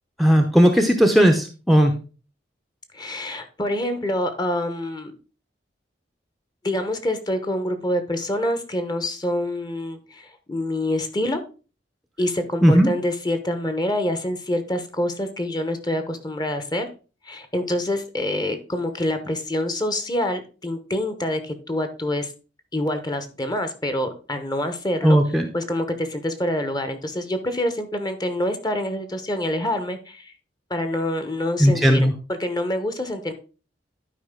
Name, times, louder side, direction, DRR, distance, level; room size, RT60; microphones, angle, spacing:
voice 1, 0.2-1.9 12.6-12.9 25.0-25.5 31.6-32.1, equal, ahead, 5 dB, 0.7 m, -16 dB
voice 2, 2.9-5.2 6.6-11.4 12.2-16.9 17.2-22.3 22.7-25.2 25.5-30.3 30.7-33.3, left 1 dB, 25° left, 8 dB, 1.0 m, -26 dB
11.5 x 4.9 x 3.7 m, 0.34 s
head